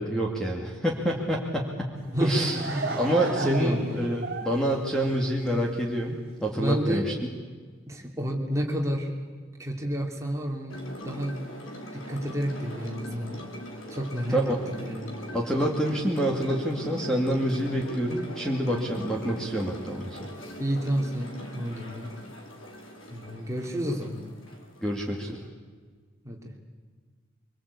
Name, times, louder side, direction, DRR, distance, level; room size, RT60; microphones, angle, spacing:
voice 1, 0.0-1.9 2.2-2.6 2.9-7.1 14.3-14.6 15.3-20.3 24.8-25.4, right 1 dB, 5° left, -1 dB, 2.3 m, -27 dB
Laughter / Crowd, 2.0-5.8, right 3 dB, 50° right, 3.1 m, -34 dB
voice 2, 2.1-3.0 3.4-4.1 6.6-7.1 7.9-9.1 9.6-10.8 11.0-11.5 11.9-13.4 13.9-14.4 14.7-15.1 20.6-22.1 23.1-24.2 26.2-26.5, equal, 15° right, 0 dB, 3.0 m, -30 dB
sound 1, 10.7-25.4, equal, 80° left, 3.3 m, -41 dB
24.5 x 24.0 x 8.5 m, 1.5 s
head